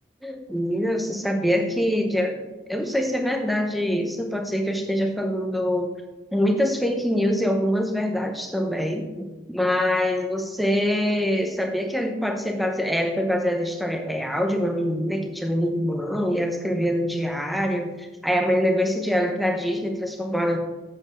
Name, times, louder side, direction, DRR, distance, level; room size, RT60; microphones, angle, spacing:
voice 1, 0.2-2.4 2.7-5.9 6.3-20.6, equal, ahead, 3 dB, 0.8 m, -24 dB
7.8 x 7.0 x 3.8 m, 1.1 s
head